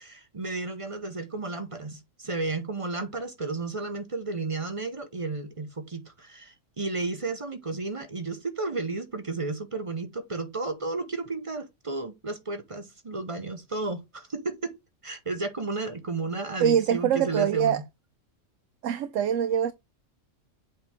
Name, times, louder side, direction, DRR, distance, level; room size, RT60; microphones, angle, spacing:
voice 1, 0.0-14.8 15.0-17.8, right 3 dB, 30° right, 0.8 m, -33 dB
voice 2, 16.6-17.8 18.8-19.7, right 9 dB, 75° right, 0.9 m, -24 dB
7.6 x 4.1 x 3.5 m
omnidirectional pair, 1.3 m